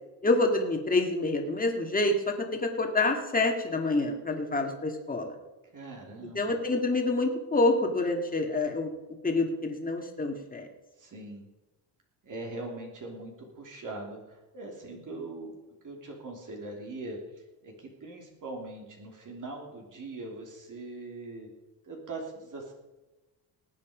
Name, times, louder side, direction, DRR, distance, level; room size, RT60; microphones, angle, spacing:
voice 1, 0.2-5.3 6.3-8.9 9.2-10.7, left 2 dB, 20° left, 3 dB, 2.2 m, -27 dB
voice 2, 5.7-6.6 11.0-11.5 12.2-15.6 15.8-17.2 17.6-21.5 21.8-22.7, right 2 dB, 45° right, 0 dB, 3.2 m, -41 dB
19.0 x 8.6 x 5.1 m, 1.1 s
cardioid pair, 115°, 44 cm